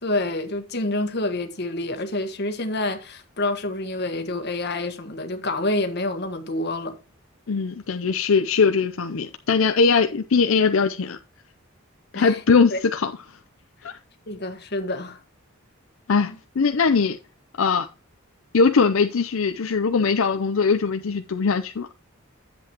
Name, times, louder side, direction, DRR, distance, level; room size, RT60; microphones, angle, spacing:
voice 1, 0.0-7.0 12.1-12.4 12.7-12.8 14.3-15.2 16.3-16.4, left 2 dB, 50° left, 1.5 m, -27 dB
voice 2, 7.5-11.2 12.1-13.1 13.8-13.9 16.1-17.2 17.6-17.9 18.5-21.9, left 5 dB, 75° left, 0.6 m, -21 dB
10.5 x 8.0 x 2.9 m
head